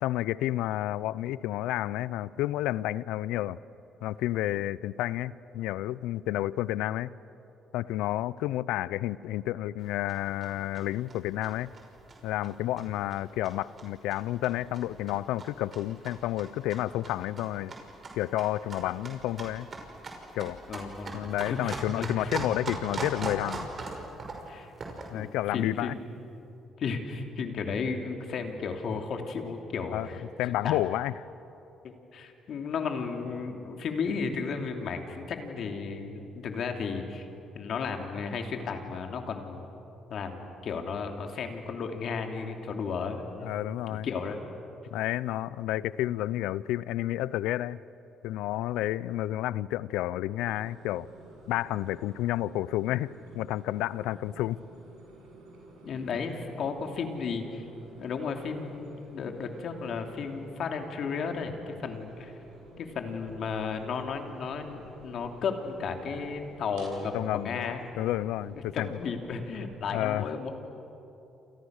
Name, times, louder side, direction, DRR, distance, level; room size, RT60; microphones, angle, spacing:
voice 1, 0.0-3.6 4.0-7.1 7.7-11.7 12.2-17.7 18.2-19.7 20.3-20.6 21.1-23.7 25.1-26.0 29.9-30.1 30.4-31.1 43.4-44.1 44.9-47.8 48.2-51.1 51.5-54.6 67.1-68.9 69.9-70.3, left 14 dB, 80° left, 19 dB, 0.5 m, -30 dB
sound 1, 9.8-25.2, right 3 dB, 40° right, 5.7 m, -41 dB
voice 2, 20.7-22.3 24.5-24.7 25.1-25.9 26.8-30.2 30.6-30.8 31.8-37.2 37.5-39.7 40.1-43.5 43.9-44.4 55.8-57.6 58.0-62.3 62.8-67.8 68.7-70.5, left 5 dB, 60° left, 4 dB, 3.0 m, -34 dB
sound 2, 50.3-69.7, right 2 dB, 90° right, 8.0 m, -51 dB
29.0 x 28.0 x 6.5 m, 2.9 s
supercardioid pair, 65°, 0 cm